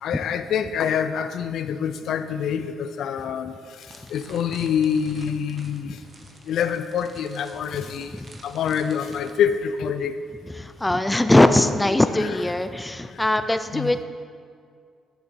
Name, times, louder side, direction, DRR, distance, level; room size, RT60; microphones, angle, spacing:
voice 1, 0.0-3.5 4.1-6.0 6.5-8.2 8.4-10.2 13.7-13.9, left 8 dB, 70° left, 10 dB, 0.4 m, -26 dB
sound 1, 3.8-9.3, right 2 dB, 35° right, 1.1 m, -48 dB
voice 2, 10.6-14.0, left 1 dB, 10° left, 10 dB, 0.5 m, -20 dB
10.5 x 6.7 x 4.5 m, 2.2 s
cardioid pair, 90°, 0 cm